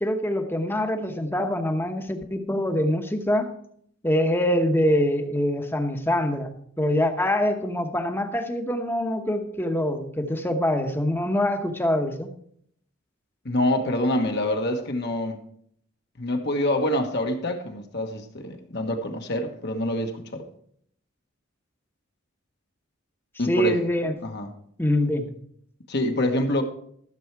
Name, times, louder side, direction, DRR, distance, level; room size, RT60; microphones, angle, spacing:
voice 1, 0.0-3.5 4.0-12.3 23.4-24.1 24.8-25.3, left 1 dB, 10° left, 6 dB, 1.0 m, -24 dB
voice 2, 13.4-15.4 16.2-20.4 23.4-23.8 24.2-24.5 25.9-26.6, left 1 dB, 55° left, 4 dB, 1.3 m, -26 dB
14.0 x 7.1 x 4.6 m, 0.66 s
head